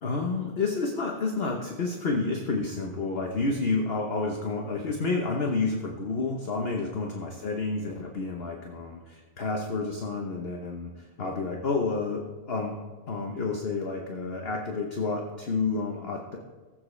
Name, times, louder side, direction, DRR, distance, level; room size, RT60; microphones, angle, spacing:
voice 1, 0.0-12.8 13.1-16.4, left 3 dB, 40° left, 1 dB, 1.1 m, -30 dB
19.0 x 7.7 x 3.3 m, 1.3 s
omnidirectional pair, 1.8 m